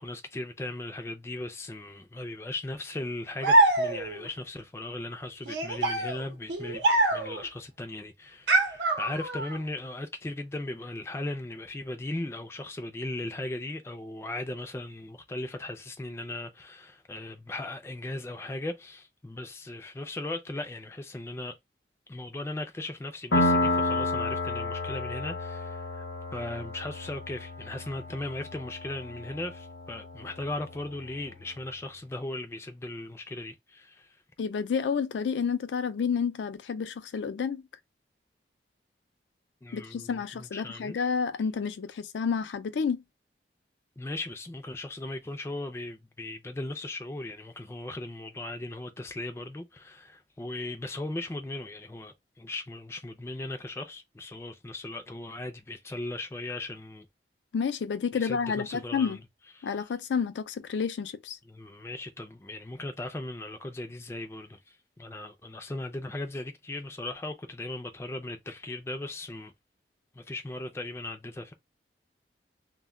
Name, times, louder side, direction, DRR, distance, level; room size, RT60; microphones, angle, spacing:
voice 1, 0.0-21.6 22.1-26.0 26.3-34.2 39.6-41.1 44.0-57.1 58.1-59.2 59.6-59.9 61.5-69.5 70.1-71.5, left 2 dB, 15° left, 0.3 m, -38 dB
sound 1, 3.4-4.3 5.5-7.5 8.5-9.6, right 2 dB, 85° right, 0.7 m, -24 dB
Piano, 23.3-30.7, left 2 dB, 70° left, 0.8 m, -31 dB
voice 2, 34.4-37.6 39.7-43.0 57.5-59.2 59.6-61.4, left 6 dB, 90° left, 0.4 m, -30 dB
2.2 x 2.1 x 3.5 m
head